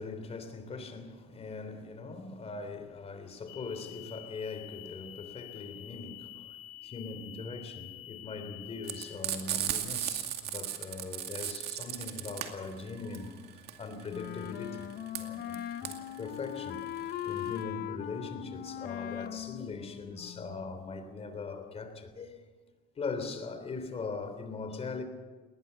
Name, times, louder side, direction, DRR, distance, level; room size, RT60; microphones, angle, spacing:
voice 1, 0.0-14.9 15.1-22.4 23.0-25.0, left 4 dB, 35° left, 3.4 m, -41 dB
sound 1, 3.5-9.2, left 15 dB, 90° left, 2.9 m, -48 dB
Frying (food), 8.8-17.6, right 11 dB, 75° right, 2.3 m, -36 dB
Wind instrument woodwind instrument, 14.1-20.7, left 12 dB, 65° left, 0.9 m, -40 dB
20.0 x 20.0 x 7.1 m
cardioid pair, 110°, 17 cm